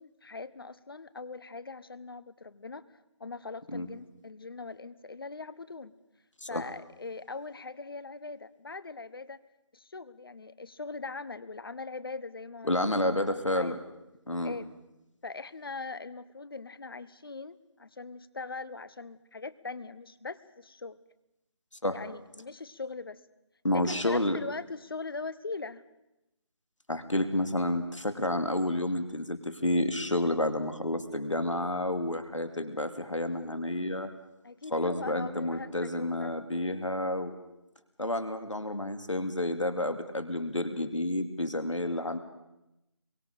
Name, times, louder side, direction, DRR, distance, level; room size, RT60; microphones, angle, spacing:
voice 1, 0.0-2.9 3.2-5.9 6.5-9.4 9.7-13.0 13.2-13.8 14.4-14.7 15.2-21.0 21.9-23.2 23.7-25.8 34.4-36.3, left 3 dB, 50° left, 15 dB, 1.2 m, -41 dB
voice 2, 12.6-13.8 14.3-14.5 21.8-22.0 23.6-24.4 26.9-34.1 34.7-37.3 38.0-42.2, left 1 dB, 85° left, 8 dB, 2.7 m, -30 dB
25.5 x 23.5 x 5.1 m, 0.91 s
figure-of-eight pair, 160°, 16 cm